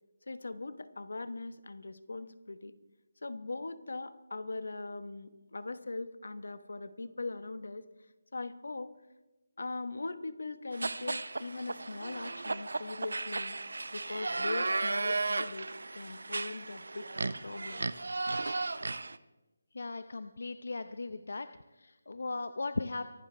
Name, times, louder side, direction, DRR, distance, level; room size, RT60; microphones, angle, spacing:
voice 1, 0.3-2.7 3.2-7.8 8.3-8.9 9.6-13.6 13.9-17.1 17.4-17.9, left 3 dB, 80° left, 13 dB, 1.1 m, -40 dB
sound 1, 10.7-19.2, right 3 dB, 80° right, 0.7 m, -35 dB
voice 2, 19.7-21.5 21.7-23.0, left 3 dB, 60° left, 11 dB, 0.6 m, -37 dB
24.0 x 12.0 x 3.3 m, 1.1 s
hypercardioid pair, 180°, 0 cm